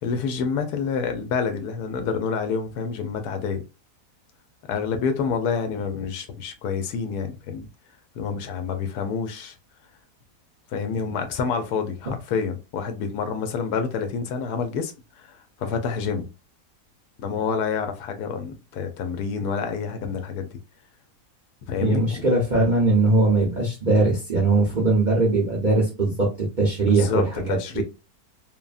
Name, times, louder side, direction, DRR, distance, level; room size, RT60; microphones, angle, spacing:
voice 1, 0.0-3.6 4.7-7.7 8.2-9.6 10.7-16.3 17.2-20.6 21.7-22.2 26.8-27.8, left 5 dB, 75° left, 1.1 m, -28 dB
voice 2, 21.8-27.8, right 2 dB, 45° right, 0.6 m, -21 dB
3.3 x 2.0 x 2.3 m
omnidirectional pair, 1.7 m